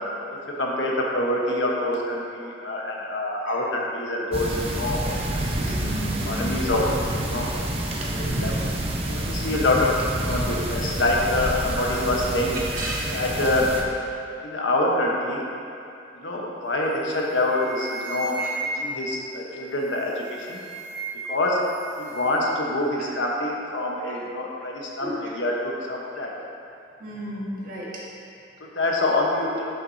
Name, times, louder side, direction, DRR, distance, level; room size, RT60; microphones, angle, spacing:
voice 1, 0.3-5.8 6.3-6.8 7.1-7.5 8.0-8.6 9.1-12.6 13.1-13.7 14.4-15.4 16.1-18.5 18.8-20.6 21.3-21.6 22.0-26.3 28.8-29.6, left 1 dB, 90° left, -2 dB, 1.1 m, -26 dB
sound 1, 4.3-13.8, right 1 dB, 35° right, 0.8 m, -28 dB
voice 2, 5.6-6.4 10.3-10.4 12.5-13.2 18.4-18.5 24.0-24.1 25.0-25.3 27.0-27.9, equal, 50° right, -5 dB, 1.4 m, -34 dB
sound 2, 16.9-17.1 17.4-19.1 19.9-21.4 21.6-22.4, right 3 dB, 35° left, 1.3 m, -34 dB
11.0 x 6.0 x 2.7 m, 2.6 s
head